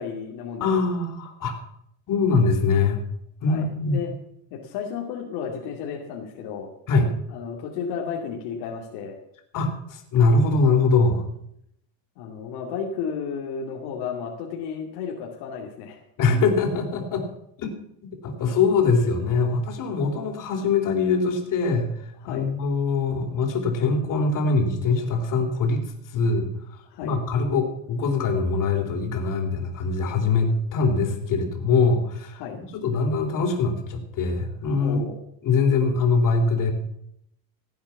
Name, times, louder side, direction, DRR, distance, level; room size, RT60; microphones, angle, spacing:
voice 1, 0.0-0.7 2.8-2.9 3.5-4.1 4.5-6.7 7.3-9.2 12.2-16.0 22.2-22.5 26.9-27.2 32.3-32.6 34.8-35.2, left 6 dB, 75° left, -1 dB, 2.6 m, -33 dB
voice 2, 0.6-1.5 2.1-3.0 3.4-4.0 6.9-7.1 9.5-11.2 16.2-17.2 17.6-17.7 18.2-21.9 22.2-25.8 26.1-32.4 32.7-35.0 35.4-36.7, left 4 dB, 50° left, 3 dB, 3.8 m, -23 dB
16.5 x 8.6 x 7.2 m, 0.73 s
cardioid pair, 130°, 41 cm